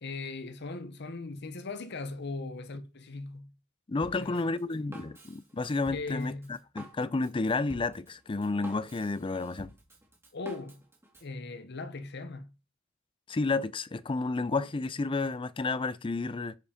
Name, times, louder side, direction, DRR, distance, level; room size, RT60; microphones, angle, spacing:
voice 1, 0.0-3.5 4.2-4.5 5.9-6.5 10.3-10.8 11.2-12.5, left 3 dB, 55° left, 0.9 m, -39 dB
voice 2, 3.9-6.3 6.7-9.7 13.3-16.6, left 3 dB, 25° left, 0.4 m, -31 dB
Drum kit, 4.0-11.3, right 1 dB, 10° right, 2.2 m, -49 dB
10.5 x 4.9 x 5.0 m
head